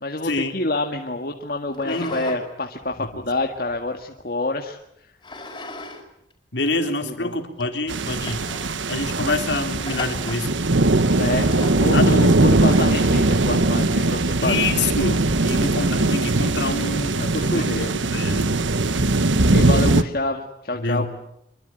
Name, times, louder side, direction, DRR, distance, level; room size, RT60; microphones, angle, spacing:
voice 1, 0.0-4.8 7.0-7.3 11.1-11.5 11.8-14.7 17.2-17.9 18.9-21.1, left 2 dB, 50° left, 2 dB, 1.9 m, -27 dB
sound 1, 1.7-2.4 2.8-4.2 5.2-6.0 6.3-6.4 7.1-7.2 7.6-7.7 8.1-8.8 9.8-10.5 11.4-11.9 12.6-13.2, left 2 dB, 25° left, 5.2 m, -37 dB
voice 2, 1.8-2.2 3.0-3.2 6.5-8.4 8.9-10.5 11.9-12.2 14.4-18.5 20.8-21.1, left 3 dB, 70° left, 5 dB, 3.6 m, -26 dB
sound 2, 7.9-20.0, right 2 dB, 85° right, 1.2 m, -20 dB
26.0 x 24.0 x 9.1 m, 0.78 s
head